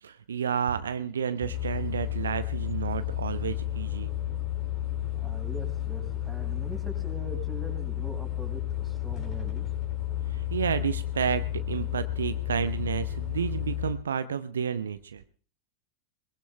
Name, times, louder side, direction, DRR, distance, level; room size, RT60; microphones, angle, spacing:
voice 1, 0.0-4.1 10.3-15.2, right 7 dB, 70° right, 11 dB, 0.7 m, -31 dB
sound 1, 1.4-13.9, left 13 dB, 35° left, 4.5 m, -32 dB
voice 2, 5.1-9.7, right 2 dB, 10° right, 1 dB, 4.7 m, -43 dB
22.5 x 21.0 x 2.3 m, 0.39 s
figure-of-eight pair, 90°, 0 cm